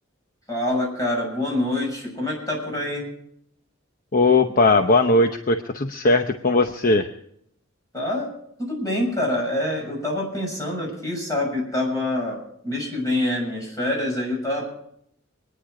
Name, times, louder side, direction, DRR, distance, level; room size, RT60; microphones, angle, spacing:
voice 1, 0.5-3.1 7.9-8.3 8.6-12.4 12.6-14.7, left 1 dB, 20° left, -1 dB, 6.8 m, -26 dB
voice 2, 4.1-7.1, left 2 dB, 45° left, 6 dB, 0.8 m, -19 dB
25.5 x 10.0 x 4.9 m, 0.73 s
head